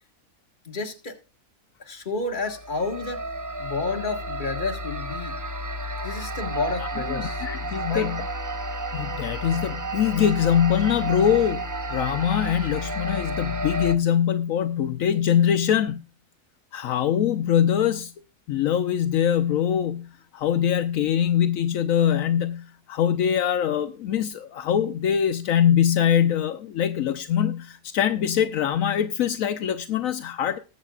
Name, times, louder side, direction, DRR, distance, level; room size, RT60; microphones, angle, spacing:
voice 1, 0.6-1.2 1.8-3.3 3.6-5.4 6.0-7.5 7.9-8.1, left 3 dB, 35° left, 1.8 m, -30 dB
sound 1, 2.4-14.0, right 1 dB, 25° right, 0.4 m, -32 dB
voice 2, 6.8-8.2 8.9-11.6 11.9-16.0 16.7-18.1 18.5-30.6, left 9 dB, 80° left, 1.1 m, -23 dB
20.5 x 7.4 x 2.4 m
omnidirectional pair, 1.4 m